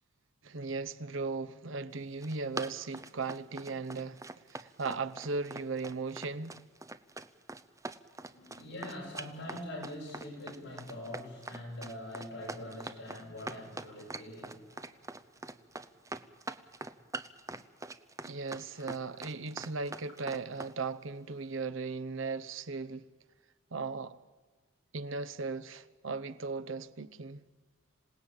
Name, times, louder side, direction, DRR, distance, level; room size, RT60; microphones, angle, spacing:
voice 1, 0.4-4.2 4.5-6.6 18.2-23.1 23.7-24.2 24.9-27.5, right 4 dB, 75° right, 0.9 m, -37 dB
Run, 2.0-20.7, right 2 dB, 15° right, 0.7 m, -43 dB
voice 2, 8.3-15.0 16.1-16.2 16.5-16.6 18.7-18.9, left 1 dB, 55° left, 7.5 m, -44 dB
26.5 x 18.0 x 9.0 m
head